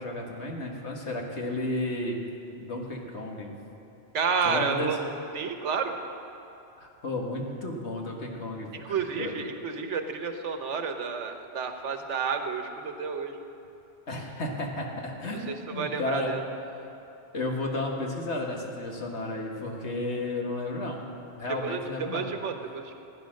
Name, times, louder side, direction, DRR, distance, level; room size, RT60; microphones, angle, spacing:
voice 1, 0.0-2.2 2.6-3.5 4.4-4.9 6.8-9.3 14.1-16.3 17.3-21.0 21.3-22.3, left 2 dB, 70° left, 0 dB, 1.9 m, -33 dB
voice 2, 4.1-5.0 5.3-6.0 8.7-13.4 15.5-16.4 21.6-22.9, right 5 dB, 80° right, 6 dB, 1.3 m, -30 dB
15.0 x 9.8 x 6.5 m, 2.9 s
omnidirectional pair, 1.2 m